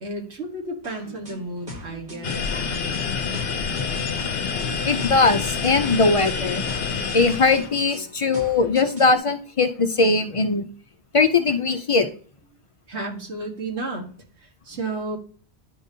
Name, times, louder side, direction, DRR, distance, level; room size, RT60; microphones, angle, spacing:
voice 1, 0.0-2.5 12.9-14.0 14.4-15.2, right 2 dB, 85° right, 1 dB, 1.7 m, -32 dB
sound 1, 0.8-9.2, left 1 dB, 40° right, 1.3 m, -42 dB
sound 2, 2.2-7.7, left 6 dB, 70° left, 0.9 m, -27 dB
voice 2, 4.9-6.6 7.1-10.7 11.1-12.1, left 3 dB, 50° left, 8 dB, 0.4 m, -20 dB
10.5 x 5.1 x 2.7 m, 0.44 s
omnidirectional pair, 1.1 m